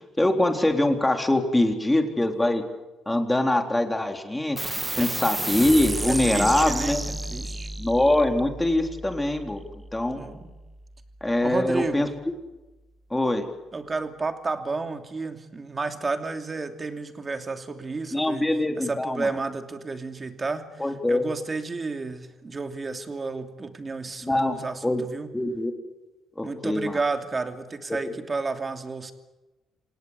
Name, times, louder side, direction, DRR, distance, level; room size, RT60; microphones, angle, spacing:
voice 1, 0.2-2.6 3.1-7.0 7.8-9.6 9.9-10.2 11.2-12.1 13.1-13.5 18.1-19.3 20.8-21.2 24.2-25.0 25.3-25.7 26.4-27.0, left 1 dB, 10° left, 4 dB, 3.7 m, -23 dB
sound 1, 4.6-11.5, right 2 dB, 15° right, 1.6 m, -32 dB
voice 2, 6.1-7.7 10.1-10.5 11.4-12.1 13.7-25.3 26.4-29.1, right 3 dB, 30° right, 6 dB, 2.8 m, -32 dB
27.5 x 18.5 x 8.2 m, 1.1 s
cardioid pair, 90°, 0 cm